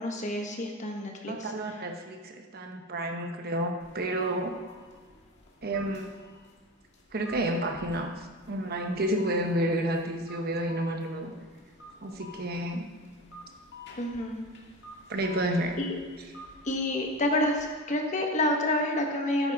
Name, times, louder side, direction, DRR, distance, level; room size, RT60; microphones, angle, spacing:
voice 1, 0.0-1.5 14.0-14.4 15.8-16.0 16.6-19.5, left 1 dB, 35° left, 2 dB, 1.4 m, -28 dB
voice 2, 1.3-4.5 5.6-6.2 7.1-11.3 12.0-12.9 15.1-15.8, right 1 dB, 50° right, 4 dB, 1.0 m, -30 dB
sound 1, 3.8-17.7, left 2 dB, 60° left, 1.9 m, -50 dB
13.0 x 9.7 x 3.6 m, 1.5 s
head